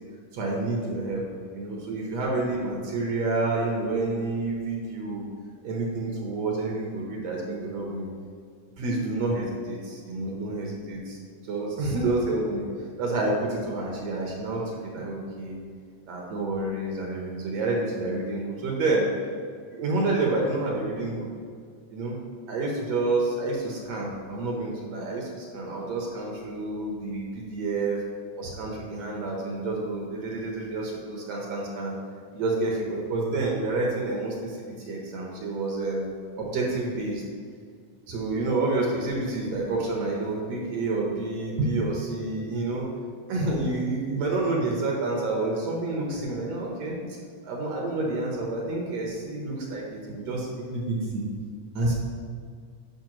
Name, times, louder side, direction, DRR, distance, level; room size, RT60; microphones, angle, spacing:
voice 1, 0.3-1.2 1.5-5.3 5.6-8.1 8.8-11.2 11.5-12.7 13.0-15.6 16.1-19.1 19.7-21.3 21.9-22.2 22.5-28.0 28.4-32.0 32.3-36.1 36.4-37.2 38.1-42.9 43.3-47.0 47.4-51.2 51.8-51.9, right 2 dB, 70° right, -2 dB, 2.0 m, -29 dB
10.5 x 5.5 x 3.0 m, 2.2 s
omnidirectional pair, 3.5 m